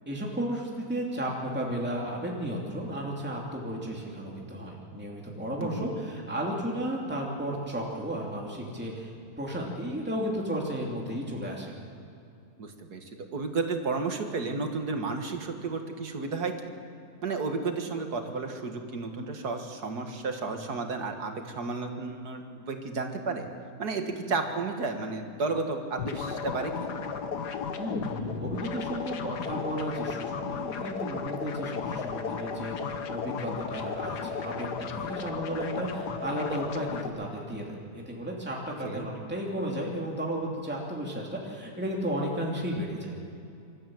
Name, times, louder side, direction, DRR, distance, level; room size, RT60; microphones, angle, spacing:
voice 1, 0.1-11.7 27.8-43.1, right 1 dB, 5° right, -2 dB, 2.7 m, -34 dB
voice 2, 5.6-5.9 12.6-16.7 17.2-23.5 23.8-26.9 38.8-39.1, right 4 dB, 70° right, 5 dB, 2.2 m, -32 dB
sound 1, 26.0-37.1, left 6 dB, 80° left, 1.7 m, -34 dB
26.0 x 13.5 x 7.8 m, 2.6 s
omnidirectional pair, 1.7 m